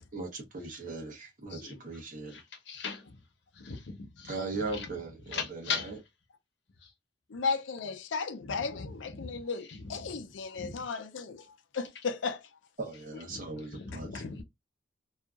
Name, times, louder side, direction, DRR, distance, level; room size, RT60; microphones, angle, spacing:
voice 1, 0.1-2.4 4.3-6.0 12.8-14.2, right 3 dB, 45° right, 1.0 m, -38 dB
voice 2, 1.5-1.8 2.3-3.2 3.5-4.9 5.3-6.0 6.8-6.9 8.4-9.3 9.6-10.2 10.5-10.8 13.1-14.4, left 5 dB, 70° left, 0.9 m, -40 dB
voice 3, 7.3-12.4 14.1-14.2, left 5 dB, 90° left, 0.5 m, -35 dB
2.7 x 2.4 x 2.4 m
head